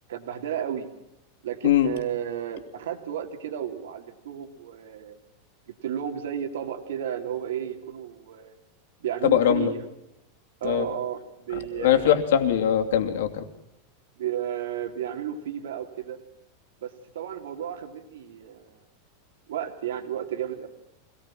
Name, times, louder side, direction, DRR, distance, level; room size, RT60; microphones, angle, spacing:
voice 1, 0.1-0.9 1.4-5.2 5.7-8.5 9.0-9.8 10.6-12.0 14.2-16.2 16.8-18.8 19.5-20.7, right 9 dB, 90° right, 6 dB, 3.1 m, -33 dB
voice 2, 9.2-9.7 10.6-10.9 11.7-13.5, left 10 dB, 75° left, 5 dB, 2.7 m, -21 dB
24.5 x 18.5 x 7.6 m, 0.84 s
supercardioid pair, 170°, 0 cm